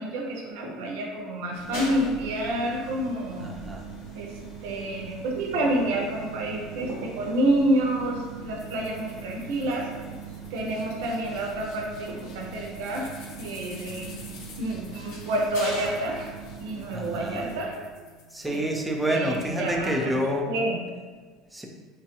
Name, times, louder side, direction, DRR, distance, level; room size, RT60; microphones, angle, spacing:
voice 1, 0.0-3.5 4.1-4.3 4.6-9.9 10.5-14.1 14.6-16.3 16.6-17.8 18.5-18.6 19.1-20.8, right 1 dB, 80° right, 0 dB, 0.4 m, -28 dB
sound 1, 1.5-17.6, right 4 dB, 85° left, 0.8 m, -40 dB
voice 2, 3.4-3.9 16.9-17.5 18.3-20.5 21.5-21.7, equal, 10° right, 1 dB, 0.5 m, -28 dB
sound 2, 5.5-18.6, right 5 dB, 50° left, 0.9 m, -50 dB
sound 3, 8.6-19.1, left 3 dB, 65° left, 0.5 m, -50 dB
3.1 x 2.2 x 2.9 m, 1.4 s
supercardioid pair, 95°, 0 cm